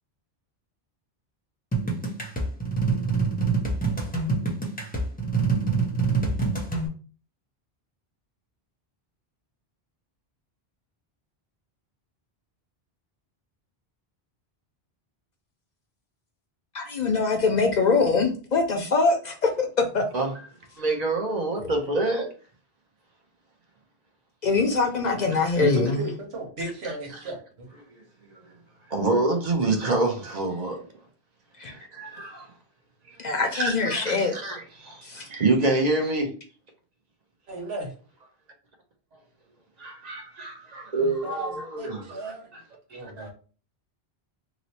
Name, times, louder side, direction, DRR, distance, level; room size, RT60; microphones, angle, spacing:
sound 1, 1.7-6.9, right 4 dB, 10° left, 0.6 m, -25 dB
voice 1, 16.7-19.5 19.8-20.0 24.4-26.0 31.6-31.7 33.2-34.3 35.0-35.2, left 4 dB, 55° left, 0.6 m, -23 dB
voice 2, 20.8-22.3 25.3-25.4 26.8-26.9 27.9-28.5 28.9-30.9 31.6-32.5 33.1-33.2 33.5-36.3 39.8-42.6 42.9-43.3, right 2 dB, 45° right, 0.8 m, -27 dB
voice 3, 25.6-27.7 37.5-37.9 41.0-42.5 42.9-43.3, right 1 dB, 85° right, 1.3 m, -34 dB
3.0 x 2.0 x 4.0 m
omnidirectional pair, 1.0 m